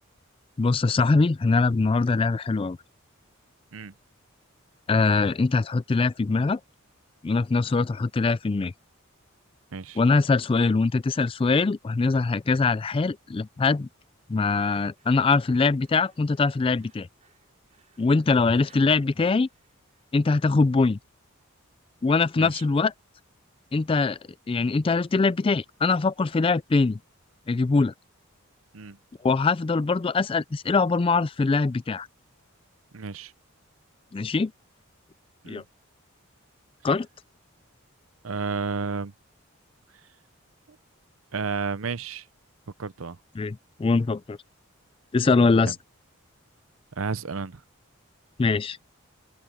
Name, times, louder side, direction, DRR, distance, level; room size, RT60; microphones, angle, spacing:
voice 1, 0.6-2.8 4.9-6.6 7.2-8.7 10.0-13.9 14.3-17.1 18.0-19.5 20.1-21.0 22.0-22.9 23.7-24.2 24.5-27.0 27.5-27.9 29.2-32.1 34.1-34.5 35.5-35.6 36.8-37.1 43.4-44.4 45.1-45.8 48.4-48.8, left 4 dB, 25° left, 0.3 m, -22 dB
sound 1, 14.6-20.1, right 5 dB, 35° right, 4.0 m, -61 dB
voice 2, 32.9-33.3 35.4-35.6 38.2-39.1 41.3-42.3 42.8-43.2 45.6-45.7 47.0-47.6, right 5 dB, 70° right, 0.7 m, -31 dB
head